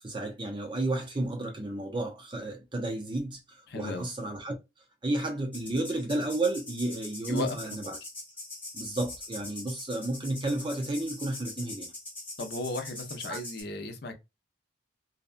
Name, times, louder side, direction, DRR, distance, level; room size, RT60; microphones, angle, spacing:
voice 1, 0.0-4.6 5.0-8.0 8.7-11.9 13.3-13.4, right 2 dB, 25° right, 0.5 m, -32 dB
voice 2, 3.7-4.1 7.3-7.8 12.4-14.1, left 2 dB, 55° left, 0.6 m, -35 dB
sound 1, 5.5-13.6, left 2 dB, 10° left, 1.0 m, -43 dB
2.7 x 2.2 x 2.4 m
head